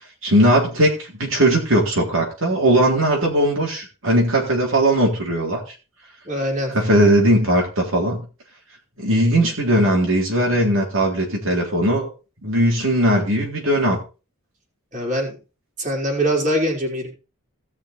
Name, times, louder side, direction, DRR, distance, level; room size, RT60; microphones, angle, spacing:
voice 1, 0.2-5.6 6.7-8.2 9.0-12.1 12.4-14.0, right 1 dB, 60° right, -2 dB, 3.8 m, -18 dB
voice 2, 6.2-6.7 14.9-15.4 15.8-17.1, equal, 35° right, 0 dB, 4.7 m, -22 dB
18.0 x 6.4 x 4.4 m, 0.32 s
head